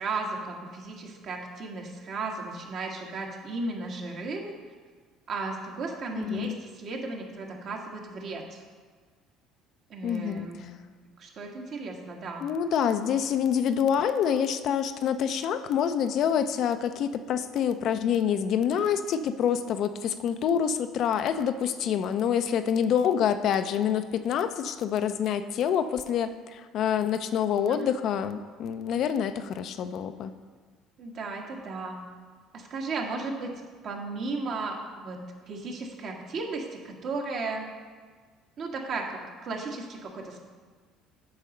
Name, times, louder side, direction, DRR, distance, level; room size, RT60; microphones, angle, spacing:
voice 1, 0.0-4.5 5.3-8.6 9.9-10.7 11.2-12.5 27.7-27.9 31.0-32.0 32.5-33.5 33.8-35.2 35.5-37.7 38.6-40.4, right 3 dB, 55° right, 0 dB, 1.5 m, -35 dB
voice 2, 6.2-6.5 10.0-10.7 12.4-30.3, left 8 dB, 60° left, 10 dB, 0.5 m, -27 dB
8.7 x 4.1 x 6.5 m, 1.6 s
supercardioid pair, 85°, 0 cm